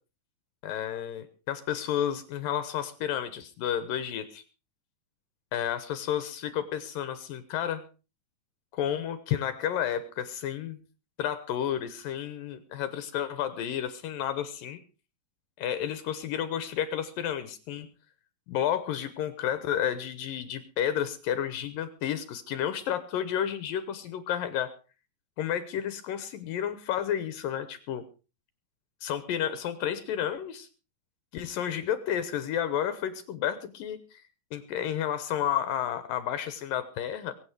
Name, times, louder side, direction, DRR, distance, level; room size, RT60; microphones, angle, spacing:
voice 1, 0.6-4.4 5.5-7.8 8.7-10.8 11.2-14.8 15.6-17.9 18.5-24.7 25.4-28.0 29.0-30.7 31.3-34.2 34.5-37.3, left 10 dB, 75° left, 12 dB, 2.7 m, -31 dB
23.0 x 8.9 x 4.9 m, 0.34 s
omnidirectional pair, 4.2 m